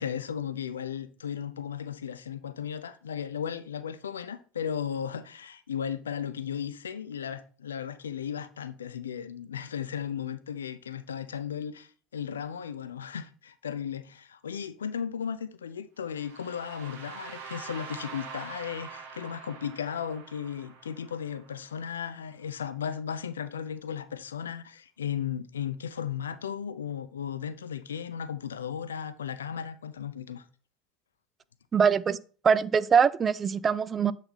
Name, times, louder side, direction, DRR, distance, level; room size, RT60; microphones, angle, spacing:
voice 1, 0.0-30.4, left 8 dB, 90° left, 0.5 m, -35 dB
sound 1, 16.1-22.0, right 6 dB, 75° right, 1.4 m, -45 dB
voice 2, 31.7-32.2 32.4-34.1, right 6 dB, 35° right, 0.4 m, -23 dB
7.9 x 4.0 x 4.1 m
hypercardioid pair, 70°, 0 cm